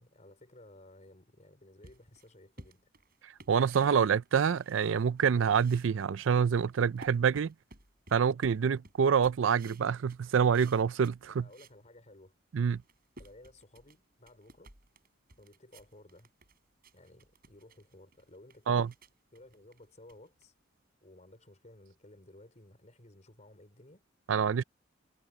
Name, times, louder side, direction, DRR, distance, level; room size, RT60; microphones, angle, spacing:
voice 1, 0.0-2.9 11.3-12.3 13.2-14.7 15.4-16.3 16.9-18.9 19.3-20.5 21.0-24.0 24.5-24.7, left 1 dB, 40° left, 4.7 m, -56 dB
sound 1, 1.8-5.2 5.5-11.8 12.2-12.3 12.7-20.8, right 2 dB, 50° right, 7.1 m, -56 dB
voice 2, 3.5-7.5 8.1-11.5 12.5-12.8 18.7-18.9 24.3-24.6, right 6 dB, 80° right, 0.4 m, -26 dB
head